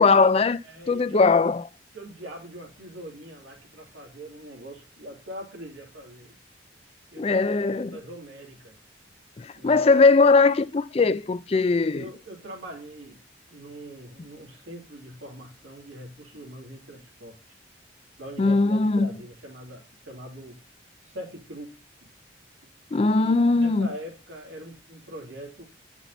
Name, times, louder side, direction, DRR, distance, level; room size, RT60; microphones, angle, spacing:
voice 1, 0.0-0.6 0.9-1.6 7.2-8.0 9.4-12.0 18.4-19.1 22.9-23.9, left 4 dB, 30° left, 0.4 m, -20 dB
voice 2, 0.6-1.4 1.9-6.3 7.1-8.8 9.6-9.9 11.9-13.2 13.5-17.6 18.2-20.6 21.0-22.1 23.1-25.6, right 1 dB, 90° right, 3.1 m, -42 dB
10.5 x 6.1 x 4.1 m
head